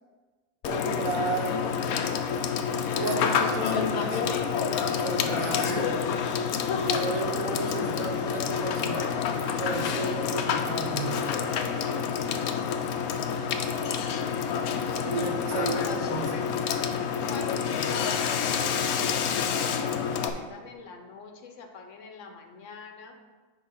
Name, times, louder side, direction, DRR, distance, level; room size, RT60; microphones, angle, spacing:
Water / Water tap faucet / Sink (filling or washing), 0.6-20.3, left 7 dB, 90° left, 1.1 m, -28 dB
voice 1, 0.6-1.8 3.0-4.2 4.8-6.0 6.7-9.1 9.6-11.2 15.0-16.4, right 3 dB, 70° right, 3 dB, 1.3 m, -33 dB
voice 2, 14.1-15.0 15.5-16.5 17.3-23.2, left 5 dB, 65° left, 5 dB, 1.0 m, -43 dB
9.4 x 3.3 x 5.5 m, 1.4 s
omnidirectional pair, 1.5 m